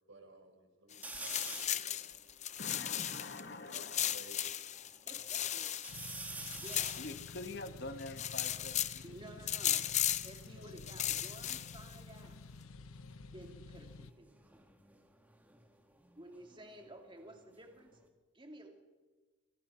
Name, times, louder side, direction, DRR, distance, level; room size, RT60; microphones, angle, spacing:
voice 1, 0.1-2.2 3.7-4.4 10.6-11.0, right 2 dB, 65° right, 5 dB, 5.2 m, -57 dB
sound 1, 0.9-3.4 3.7-7.7 8.0-9.0 9.5-10.4 10.8-11.9, left 11 dB, 35° left, 0.7 m, -36 dB
sound 2, 1.0-1.9 2.4-2.5 2.7-4.3 4.8-5.4 5.8-9.1 10.1-12.0 12.2-12.7 14.3-16.9 17.3-18.1, right 2 dB, 10° right, 2.3 m, -50 dB
voice 2, 2.6-4.0 7.0-9.0, left 2 dB, 50° left, 8 dB, 1.6 m, -45 dB
voice 3, 4.9-5.7 6.6-6.9 9.0-9.9 10.2-12.4 13.3-14.3 16.1-18.0 18.3-18.7, right 1 dB, 25° right, 3 dB, 2.6 m, -53 dB
sound 3, 5.9-14.1, left 3 dB, 80° left, 1.0 m, -51 dB
27.0 x 26.5 x 5.8 m, 1.3 s
head